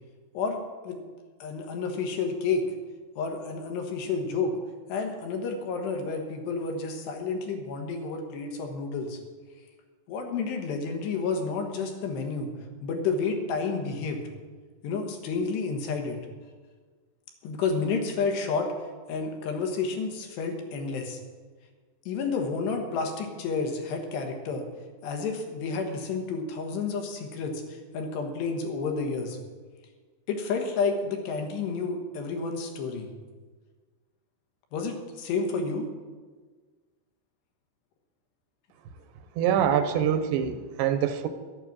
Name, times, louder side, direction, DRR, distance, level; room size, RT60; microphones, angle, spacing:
voice 1, 0.4-1.0 1.4-2.7 3.2-4.5 4.9-9.2 10.1-12.5 12.8-14.2 14.8-16.2 17.4-18.7 19.1-21.2 22.1-24.7 25.0-29.4 30.3-33.1 34.7-35.9, left 4 dB, 90° left, 4 dB, 3.6 m, -30 dB
voice 2, 39.4-41.3, right 9 dB, 85° right, 10 dB, 2.9 m, -25 dB
12.0 x 8.9 x 7.4 m, 1.4 s
omnidirectional pair, 4.8 m